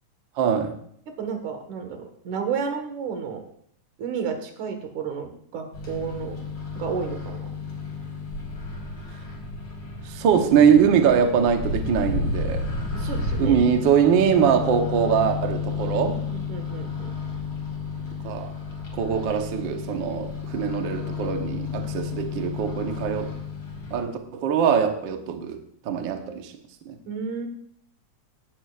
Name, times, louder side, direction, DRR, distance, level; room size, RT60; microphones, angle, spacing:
voice 1, 0.4-0.7 10.0-12.7 13.4-16.2 18.2-18.5 18.9-23.3 23.9-25.6 25.8-26.5 26.9-27.0, right 7 dB, 55° right, 5 dB, 1.4 m, -22 dB
voice 2, 1.2-3.4 4.0-6.4 6.8-7.5 12.9-13.6 16.3-17.1 27.1-27.5, right 6 dB, 85° right, 5 dB, 3.0 m, -31 dB
Microwave oven, 5.7-24.0, left 4 dB, 50° left, 5.3 m, -32 dB
18.0 x 11.5 x 2.5 m, 0.65 s
omnidirectional pair, 3.3 m